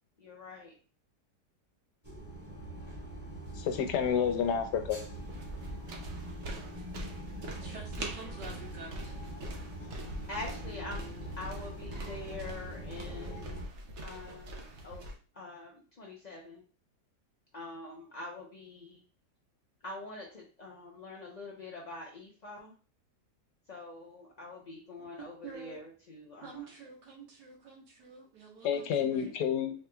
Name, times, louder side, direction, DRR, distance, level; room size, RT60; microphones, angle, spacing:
voice 1, 0.2-0.7 10.3-11.0 11.4-13.6 14.0-15.0 15.4-16.6 17.5-19.0 19.8-22.7 23.7-26.6, left 2 dB, 70° left, -3 dB, 0.4 m, -45 dB
sound 1, 2.0-13.6, right 1 dB, 10° right, 1.4 m, -43 dB
voice 2, 3.6-5.0 28.6-29.7, left 8 dB, 90° left, 7 dB, 1.2 m, -29 dB
sound 2, 5.1-15.1, right 1 dB, 60° right, 0.8 m, -43 dB
voice 3, 7.6-8.9 25.0-25.1 25.4-25.8 26.4-29.3, right 5 dB, 85° right, -2 dB, 1.8 m, -48 dB
4.2 x 3.0 x 2.2 m, 0.37 s
omnidirectional pair, 1.8 m